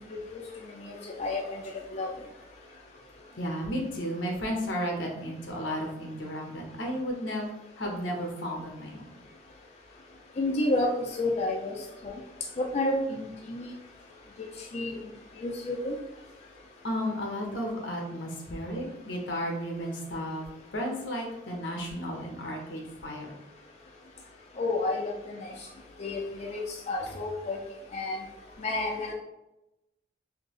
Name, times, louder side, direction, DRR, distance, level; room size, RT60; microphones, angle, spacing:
voice 1, 0.8-1.6 1.9-2.1 10.4-10.9 11.2-11.8 12.0-12.1 12.6-13.7 14.7-15.0 15.4-15.9 24.6-25.5 26.0-27.6 27.9-28.2 28.6-29.1, left 2 dB, 35° left, -1 dB, 0.4 m, -30 dB
voice 2, 3.3-7.5 7.8-9.2 16.8-20.5 20.7-23.3, equal, 80° left, 0 dB, 0.9 m, -33 dB
3.7 x 2.8 x 3.1 m, 0.94 s
head